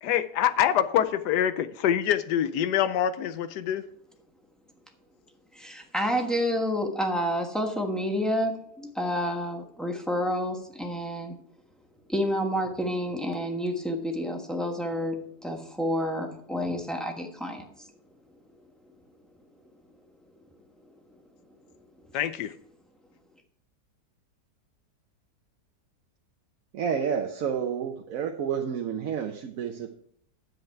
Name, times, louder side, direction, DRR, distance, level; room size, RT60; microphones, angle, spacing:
voice 1, 0.0-3.8 22.1-22.5, left 10 dB, 75° left, 1.2 m, -25 dB
voice 2, 5.5-11.4 12.1-17.9, equal, ahead, 1.0 m, -29 dB
voice 3, 26.7-29.9, right 7 dB, 60° right, 1.0 m, -30 dB
10.0 x 7.9 x 4.6 m
omnidirectional pair, 1.9 m